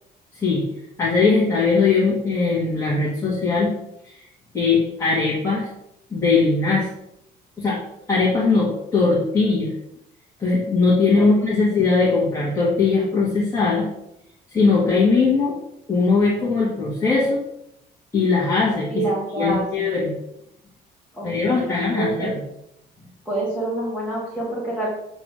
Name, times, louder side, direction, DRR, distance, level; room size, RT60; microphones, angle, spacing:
voice 1, 0.3-0.6 1.0-3.7 4.0-4.2 4.5-5.7 6.1-6.9 7.6-7.8 8.1-9.7 10.4-13.9 14.5-15.6 15.9-17.4 18.1-19.0 19.4-20.2 21.2-22.4, left 4 dB, 15° left, -7 dB, 1.8 m, -20 dB
voice 2, 11.2-11.6 18.9-19.9 21.1-22.3 23.3-24.9, right 2 dB, 5° right, -8 dB, 2.1 m, -27 dB
8.0 x 3.8 x 6.2 m, 0.81 s
cardioid pair, 175°, 17 cm